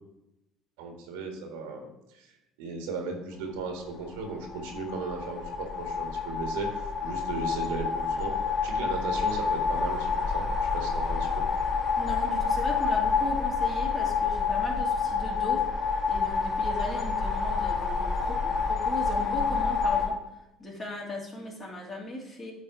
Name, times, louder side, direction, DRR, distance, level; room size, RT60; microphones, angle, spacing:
voice 1, 0.8-2.3 2.6-8.4 8.6-10.5 10.7-11.5, right 4 dB, 85° right, 2 dB, 1.6 m, -36 dB
sound 1, 4.2-20.1, left 5 dB, 45° left, 1.9 m, -28 dB
voice 2, 12.0-15.7 16.1-20.2 20.6-22.5, left 1 dB, 30° left, -2 dB, 2.6 m, -37 dB
8.4 x 3.5 x 5.6 m, 0.90 s
supercardioid pair, 85°, 0 cm